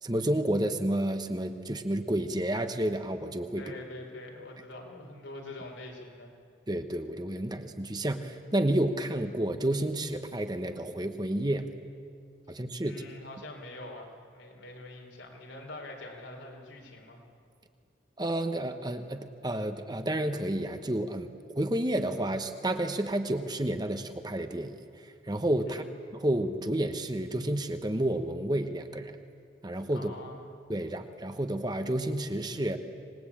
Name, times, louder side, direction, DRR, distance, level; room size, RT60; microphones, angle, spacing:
voice 1, 0.0-3.6 6.7-11.7 12.5-13.0 18.2-25.8 26.1-29.2 29.6-30.1 30.7-32.8, right 1 dB, 20° right, 8 dB, 1.0 m, -30 dB
voice 2, 3.5-6.3 12.8-17.2 25.6-25.9 29.9-30.5, left 2 dB, 80° left, 1 dB, 4.7 m, -44 dB
26.0 x 20.0 x 8.7 m, 2.3 s
head